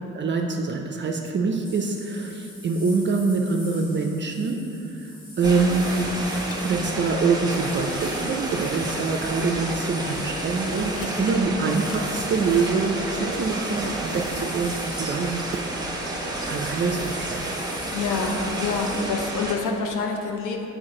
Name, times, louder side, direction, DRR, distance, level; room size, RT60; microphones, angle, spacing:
voice 1, 0.1-6.3 6.6-16.0 16.5-17.5, right 4 dB, 40° right, 3 dB, 0.4 m, -25 dB
sound 1, 1.6-19.1, left 1 dB, 30° left, 1.4 m, -44 dB
sound 2, 5.4-19.6, right 1 dB, 15° right, 1.0 m, -30 dB
sound 3, 6.0-6.1 6.4-7.0 7.4-7.5 8.2-8.3 8.7-9.2 9.5-9.6 10.0-10.3 10.8-11.5 11.8-13.9, left 5 dB, 45° left, 0.7 m, -43 dB
voice 2, 17.9-20.7, left 4 dB, 85° left, 2 dB, 0.8 m, -27 dB
6.3 x 4.8 x 3.7 m, 2.8 s
cardioid pair, 90°, 30 cm